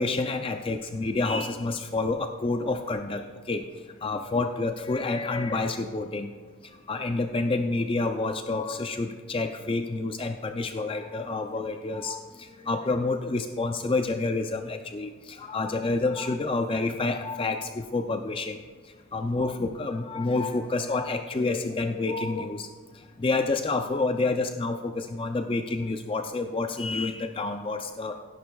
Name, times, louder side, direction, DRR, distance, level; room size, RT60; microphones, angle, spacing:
voice 1, 0.0-3.6 4.0-6.3 6.9-12.2 12.6-18.6 19.1-22.7 23.2-28.2, left 3 dB, 25° left, 6 dB, 0.4 m, -28 dB
16.5 x 10.5 x 2.3 m, 1.5 s
head